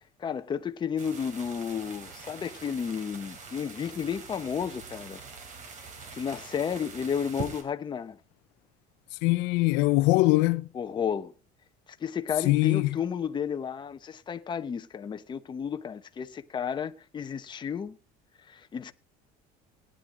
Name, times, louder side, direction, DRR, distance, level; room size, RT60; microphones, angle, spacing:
voice 1, 0.2-5.2 6.2-8.2 10.7-11.3 11.9-18.0 18.4-18.9, left 7 dB, 25° left, 1.0 m, -32 dB
sound 1, 1.0-7.6, right 4 dB, 45° right, 4.1 m, -43 dB
voice 2, 9.2-10.6 12.5-12.8, left 21 dB, 80° left, 0.7 m, -22 dB
19.0 x 10.0 x 3.8 m
cardioid pair, 140°, 18 cm